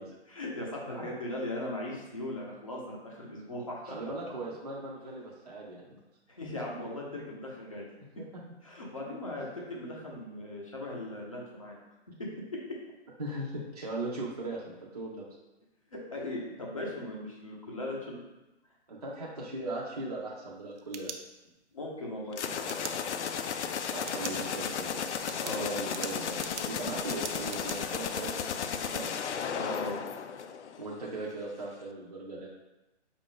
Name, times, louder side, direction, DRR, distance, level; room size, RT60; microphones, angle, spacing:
voice 1, 0.3-3.8 6.3-7.9 8.6-11.7 12.2-12.3 15.9-18.2 21.7-23.2 25.4-25.7 29.6-30.0, left 1 dB, 30° left, -3 dB, 0.6 m, -38 dB
voice 2, 3.8-6.0 8.2-8.3 13.2-15.2 18.9-21.1 23.9-25.0 25.6-29.1 30.8-32.5, right 2 dB, 35° right, -5 dB, 0.5 m, -38 dB
sound 1, 20.5-21.7 22.7-22.9 24.0-24.4 24.8-24.9 25.3-27.8, right 6 dB, 80° right, 0.6 m, -42 dB
sound 2, 22.3-31.0, left 7 dB, 80° left, 0.5 m, -34 dB
5.3 x 2.5 x 3.7 m, 1.0 s
hypercardioid pair, 175°, 34 cm